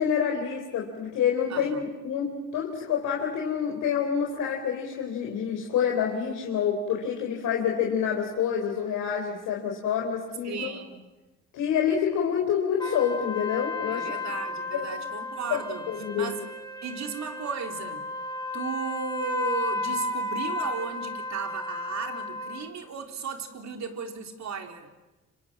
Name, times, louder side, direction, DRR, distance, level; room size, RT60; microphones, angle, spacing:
voice 1, 0.0-10.7 11.5-14.1 14.7-14.8 15.5-15.6 15.9-16.3, left 8 dB, 90° left, -1 dB, 4.0 m, -27 dB
voice 2, 1.5-1.8 10.4-11.0 13.9-15.8 16.1-16.4 16.8-18.1 18.5-24.9, right 6 dB, 65° right, 4 dB, 3.9 m, -35 dB
sound 1, 12.8-22.7, left 2 dB, 10° left, 6.4 m, -33 dB
29.5 x 26.5 x 7.6 m, 1.1 s
cardioid pair, 90°, 30 cm